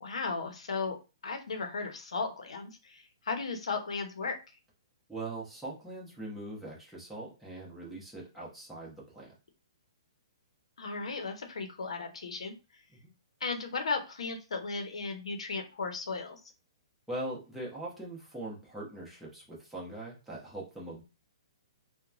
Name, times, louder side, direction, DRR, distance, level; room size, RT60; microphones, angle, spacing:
voice 1, 0.0-1.0 1.2-4.4 10.8-12.5 13.4-16.4, left 4 dB, 80° left, 5 dB, 0.7 m, -35 dB
voice 2, 5.1-9.3 13.0-13.1 17.1-21.0, right 2 dB, ahead, -6 dB, 0.9 m, -41 dB
2.9 x 2.1 x 2.4 m, 0.31 s
hypercardioid pair, 155°, 3 cm